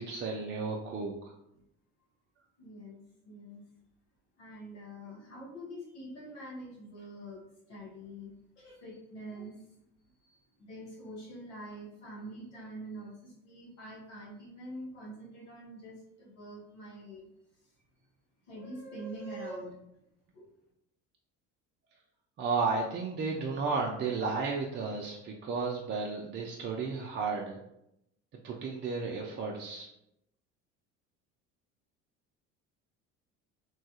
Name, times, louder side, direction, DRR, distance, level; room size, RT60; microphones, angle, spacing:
voice 1, 0.0-1.3 22.4-27.6 28.4-29.9, right 4 dB, 35° right, -2 dB, 0.4 m, -33 dB
voice 2, 2.6-3.6 4.4-9.7 10.2-17.3 17.6-17.7 18.5-19.8 20.3-20.5, right 1 dB, 90° left, -4 dB, 1.0 m, -45 dB
3.0 x 2.3 x 2.8 m, 0.81 s
hypercardioid pair, 70°, 35 cm